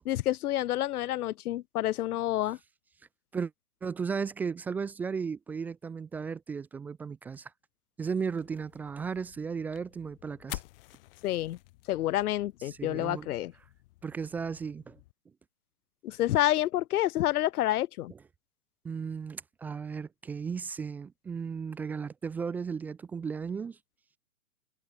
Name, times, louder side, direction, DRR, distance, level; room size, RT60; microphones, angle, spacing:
voice 1, 0.1-2.6 11.2-11.6 11.9-13.5 16.0-18.1, left 14 dB, 85° left, 0.6 m, -28 dB
voice 2, 3.8-7.5 8.0-10.6 12.6-13.3 14.0-15.0 18.1-18.2 18.8-23.8, right 6 dB, 5° right, 0.5 m, -35 dB
sound 1, 8.4-15.1, left 20 dB, 40° left, 4.0 m, -49 dB
hypercardioid pair, 155°, 43 cm